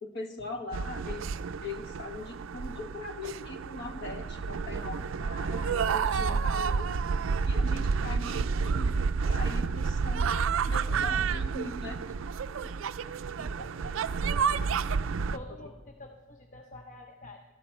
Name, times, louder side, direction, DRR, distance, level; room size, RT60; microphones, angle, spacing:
voice 1, 0.0-1.3 1.6-6.9 7.4-9.0 9.3-12.0, left 2 dB, 55° left, 5 dB, 1.2 m, -40 dB
sound 1, 0.7-15.4, right 5 dB, 65° right, 0.4 m, -30 dB
voice 2, 13.0-14.2 15.3-17.4, left 1 dB, 35° left, 2 dB, 0.8 m, -48 dB
14.5 x 11.5 x 4.4 m, 1.2 s
head